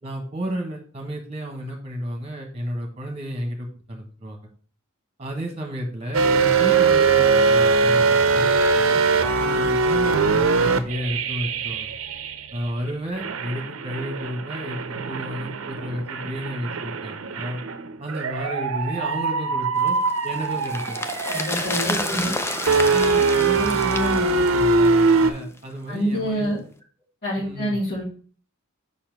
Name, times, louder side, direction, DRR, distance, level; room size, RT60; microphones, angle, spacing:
voice 1, 0.0-4.5 5.2-9.0 9.3-11.9 12.5-17.6 18.0-20.0 20.2-21.0 21.8-22.5 22.9-26.5 27.4-27.7, equal, 30° right, 3 dB, 1.6 m, -32 dB
sound 1, 6.1-12.7 13.2-25.3, right 4 dB, 70° right, 0.7 m, -22 dB
sound 2, 19.9-25.3 25.6-25.7, left 2 dB, 10° left, 0.4 m, -30 dB
voice 2, 21.3-22.3 25.9-26.6 27.2-28.0, equal, 50° left, -9 dB, 2.7 m, -26 dB
5.6 x 4.3 x 5.4 m, 0.43 s
head